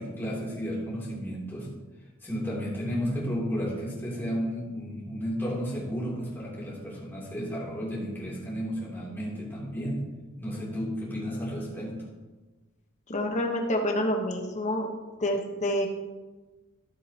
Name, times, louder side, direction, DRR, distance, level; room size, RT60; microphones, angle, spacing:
voice 1, 0.0-1.7 2.2-10.0 10.4-12.1, equal, 10° left, -7 dB, 2.9 m, -33 dB
voice 2, 13.1-14.9 15.2-15.9, left 1 dB, 35° left, 3 dB, 1.1 m, -27 dB
14.0 x 7.6 x 2.9 m, 1.2 s
head